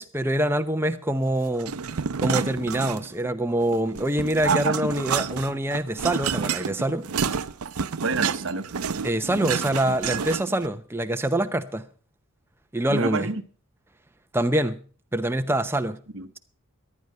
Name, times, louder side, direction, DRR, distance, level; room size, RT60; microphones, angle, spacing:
voice 1, 0.0-1.7 2.2-7.1 9.0-11.8 12.7-13.3 14.3-14.8 15.1-16.0, right 1 dB, 10° right, 0.7 m, -25 dB
sound 1, 1.6-3.3 3.6-10.7, right 6 dB, 85° right, 0.6 m, -29 dB
voice 2, 4.4-4.9 8.0-8.7 12.9-13.4 16.1-16.3, right 4 dB, 60° right, 0.9 m, -26 dB
14.5 x 11.0 x 5.5 m
head